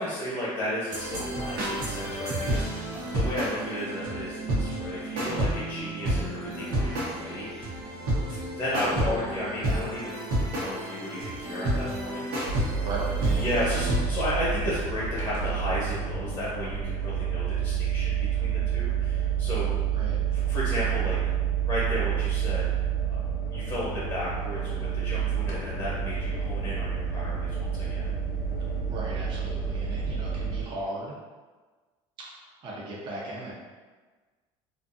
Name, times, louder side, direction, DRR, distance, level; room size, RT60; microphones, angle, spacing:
voice 1, 0.0-7.8 8.1-10.2 10.5-12.2 13.3-19.7 20.3-21.2 21.7-22.7 23.1-23.2 23.5-28.1, left 1 dB, 30° left, -8 dB, 0.8 m, -33 dB
sound 1, 0.9-14.1, right 1 dB, 85° right, 0.9 m, -30 dB
sound 2, 12.5-30.6, right 8 dB, 60° left, 0.7 m, -29 dB
voice 2, 12.8-13.7 19.9-20.2 28.9-31.1 32.6-33.5, right 1 dB, 40° right, -5 dB, 0.6 m, -36 dB
2.5 x 2.4 x 2.5 m, 1.4 s
cardioid pair, 135°, 13 cm